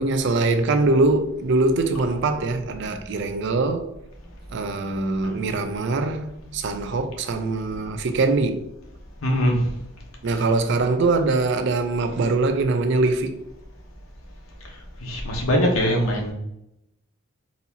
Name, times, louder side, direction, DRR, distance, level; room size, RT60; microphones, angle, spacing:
voice 1, 0.0-3.8 4.5-6.3 6.5-8.6 10.2-13.4, right 3 dB, 55° right, 0.4 m, -22 dB
voice 2, 9.2-9.7 15.0-16.3, equal, 75° left, 1.0 m, -22 dB
4.0 x 2.7 x 2.7 m
head